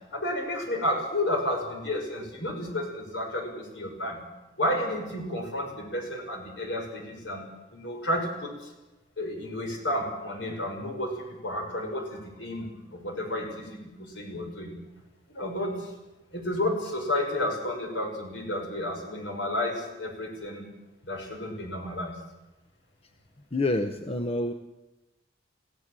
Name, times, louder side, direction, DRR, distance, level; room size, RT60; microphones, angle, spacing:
voice 1, 0.1-4.2 4.6-8.7 9.2-14.7 15.3-15.9 16.3-20.7 21.0-22.2, left 1 dB, 70° left, 3 dB, 6.0 m, -31 dB
voice 2, 23.5-24.5, left 2 dB, 30° left, 7 dB, 1.0 m, -27 dB
25.5 x 16.5 x 7.6 m, 1.0 s
head